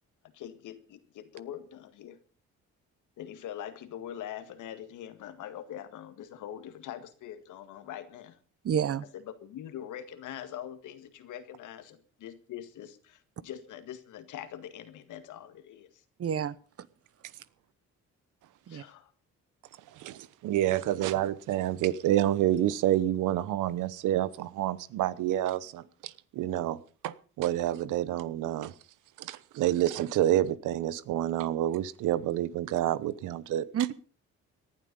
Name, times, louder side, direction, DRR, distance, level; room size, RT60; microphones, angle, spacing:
voice 1, 0.3-2.2 3.2-8.4 9.3-15.9 18.7-19.1, left 10 dB, 85° left, 10 dB, 2.0 m, -43 dB
voice 2, 8.6-9.1 16.2-16.9 18.7-18.8 33.7-33.9, right 8 dB, 50° right, 18 dB, 1.0 m, -29 dB
voice 3, 20.0-26.8 27.0-28.7 29.2-33.7, right 13 dB, 85° right, 18 dB, 1.0 m, -28 dB
18.5 x 11.5 x 5.4 m, 0.40 s
cardioid pair, 90°, 30 cm